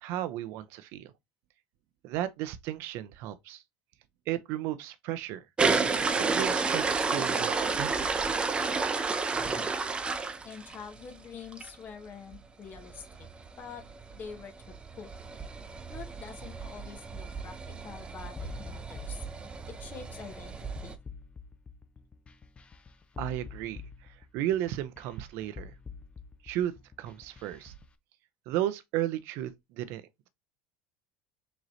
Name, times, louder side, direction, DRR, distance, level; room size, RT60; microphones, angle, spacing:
voice 1, 0.0-1.1 2.0-3.6 4.3-5.4 6.3-7.9 23.2-23.8 24.3-25.7 26.4-26.7 27.0-27.7 28.5-30.0, right 12 dB, 65° right, 0.6 m, -34 dB
sound 1, 5.6-11.0 11.5-11.7 12.1-12.2 12.3-12.4 12.7-21.0, right 4 dB, 25° right, 0.6 m, -31 dB
voice 2, 10.4-13.3 13.6-13.8 14.1-15.1 15.9-19.2 19.6-21.0, left 6 dB, 45° left, 1.1 m, -46 dB
sound 2, 18.4-27.9, left 6 dB, 25° left, 0.6 m, -47 dB
5.0 x 3.0 x 2.7 m
hypercardioid pair, 85°, 4 cm